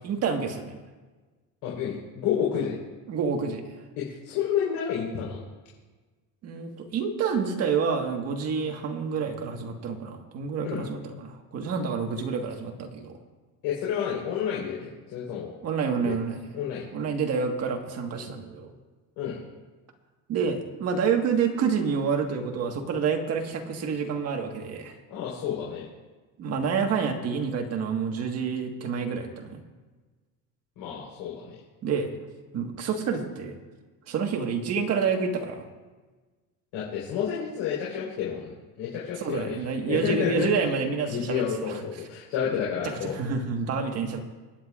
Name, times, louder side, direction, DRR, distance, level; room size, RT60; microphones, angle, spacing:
voice 1, 0.0-0.8 3.1-3.8 6.4-13.2 15.6-16.4 16.9-18.7 20.3-24.9 26.4-29.6 31.8-32.1 32.5-33.5 34.1-35.7 39.2-41.7 43.1-44.2, right 5 dB, 40° right, 3 dB, 1.6 m, -28 dB
voice 2, 1.6-2.8 4.0-5.4 10.6-10.8 13.6-15.5 16.0-16.1 16.5-16.8 19.2-19.4 25.1-25.9 30.8-31.6 36.7-38.5 38.8-39.6 39.9-40.5 41.1-43.1, left 8 dB, 75° left, -5 dB, 4.1 m, -30 dB
28.5 x 9.7 x 2.4 m, 1.3 s
cardioid pair, 155°, 37 cm